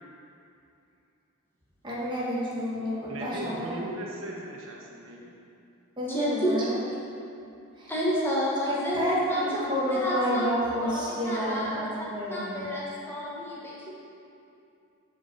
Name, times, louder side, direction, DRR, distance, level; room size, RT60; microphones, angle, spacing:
voice 1, 1.8-3.8 6.0-6.8 7.8-7.9 8.7-12.7, equal, 20° right, -6 dB, 1.6 m, -30 dB
voice 2, 3.1-5.3, right 1 dB, 65° right, -3 dB, 1.4 m, -38 dB
voice 3, 6.1-6.7 7.9-10.4 10.8-11.9 12.3-13.9, equal, 10° left, -7 dB, 1.6 m, -30 dB
7.2 x 5.4 x 6.9 m, 2.6 s
head